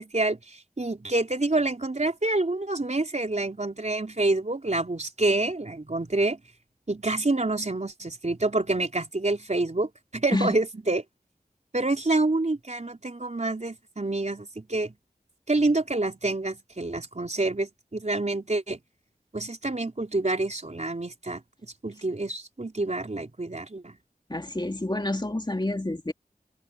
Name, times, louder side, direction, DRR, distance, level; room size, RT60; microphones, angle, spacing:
voice 1, 0.0-6.4 6.9-11.0 11.7-14.9 15.5-18.8 19.3-24.0, right 2 dB, 45° right, 4.2 m, -27 dB
voice 2, 24.3-26.1, left 2 dB, 30° left, 2.9 m, -28 dB
open air
wide cardioid pair, 45°, 16 cm